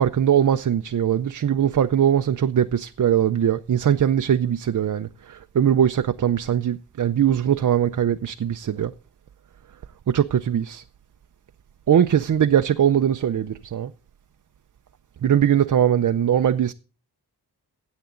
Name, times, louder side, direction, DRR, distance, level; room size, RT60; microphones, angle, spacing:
voice 1, 0.0-8.9 10.1-10.8 11.9-13.9 15.2-16.7, right 9 dB, 50° right, 0.5 m, -21 dB
16.5 x 8.1 x 3.8 m
wide cardioid pair, 105°, 41 cm